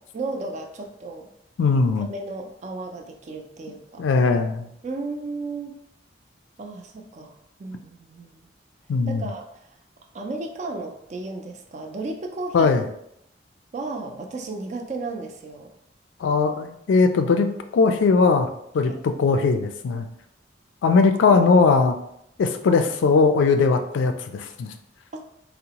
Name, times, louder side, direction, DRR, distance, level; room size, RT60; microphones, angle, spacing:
voice 1, 0.1-1.3 2.0-4.0 4.8-5.8 6.6-8.5 9.1-9.5 10.1-12.7 13.7-15.7 18.8-19.0 21.2-21.5 25.1-25.2, right 3 dB, 40° right, 3 dB, 0.4 m, -34 dB
voice 2, 1.6-2.1 4.0-4.7 8.9-9.3 12.5-12.8 16.2-18.5 18.7-20.1 20.8-22.0 22.4-24.7, left 4 dB, 80° left, 8 dB, 0.3 m, -19 dB
3.7 x 2.0 x 2.8 m, 0.76 s
head